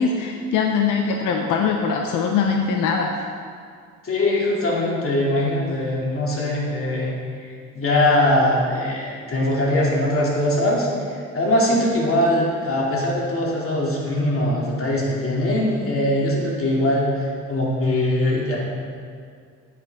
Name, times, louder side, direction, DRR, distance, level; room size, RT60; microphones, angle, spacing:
voice 1, 0.0-3.1, left 5 dB, 90° left, 2 dB, 0.7 m, -22 dB
voice 2, 4.0-7.1 7.4-18.6, left 1 dB, 45° left, -4 dB, 2.6 m, -21 dB
9.7 x 9.3 x 3.6 m, 2.2 s
cardioid pair, 90°, 30 cm